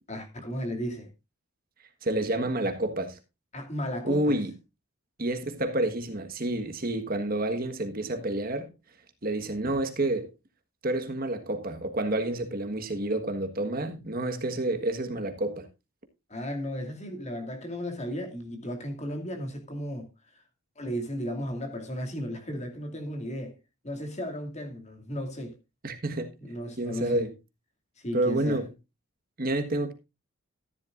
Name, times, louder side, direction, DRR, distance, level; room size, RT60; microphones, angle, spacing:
voice 1, 0.1-1.1 3.5-4.4 16.3-20.4 20.8-23.6 23.8-25.6 26.4-27.3 28.0-28.6, equal, 30° left, 2.5 m, -35 dB
voice 2, 2.0-3.2 4.0-4.5 5.2-8.7 9.2-10.3 10.8-15.7 25.8-26.3 26.8-27.3 28.1-28.6 29.4-29.9, right 1 dB, 40° right, 1.4 m, -29 dB
14.0 x 10.5 x 2.5 m
head